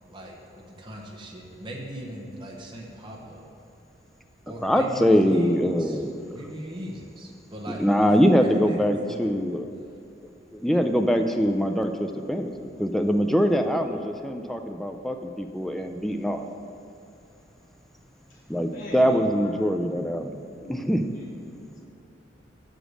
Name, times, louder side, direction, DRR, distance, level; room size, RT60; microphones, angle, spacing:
voice 1, 0.1-3.4 4.5-6.0 6.3-8.1 8.4-9.3, equal, 25° right, -2 dB, 0.9 m, -39 dB
voice 2, 4.6-6.1 7.8-9.7 10.5-16.5 18.5-20.3 20.7-21.0, equal, ahead, 4 dB, 0.3 m, -23 dB
voice 3, 18.7-19.7 20.4-21.9, equal, 45° left, -5 dB, 1.7 m, -41 dB
6.4 x 5.0 x 6.2 m, 2.6 s
head